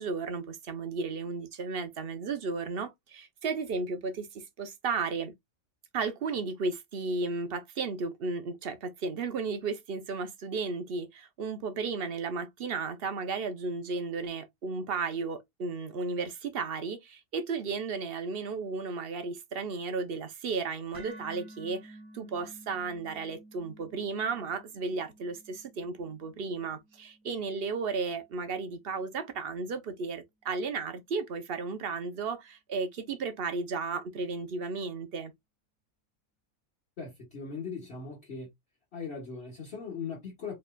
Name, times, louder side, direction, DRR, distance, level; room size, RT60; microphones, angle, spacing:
voice 1, 0.0-5.3 5.9-35.3, right 4 dB, 50° right, 0.9 m, -34 dB
sound 1, 20.9-29.0, right 2 dB, 15° right, 1.6 m, -53 dB
voice 2, 37.0-38.5 38.9-40.6, left 5 dB, 50° left, 1.7 m, -39 dB
4.6 x 3.3 x 2.3 m
omnidirectional pair, 1.4 m